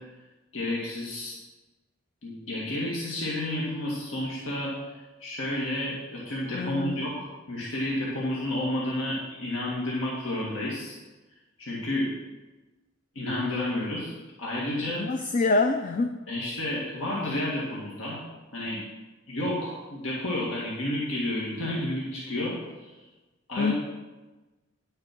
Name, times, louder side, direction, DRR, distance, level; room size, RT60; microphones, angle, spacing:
voice 1, 0.5-1.4 2.2-11.0 11.6-12.1 13.2-14.1 14.4-15.1 16.3-18.2 18.5-18.8 19.3-22.9 23.5-23.7, left 1 dB, 80° left, -6 dB, 2.1 m, -31 dB
voice 2, 6.5-7.0 15.0-16.2 23.6-23.7, left 3 dB, 40° left, 6 dB, 0.5 m, -25 dB
10.0 x 6.6 x 6.0 m, 1.1 s
head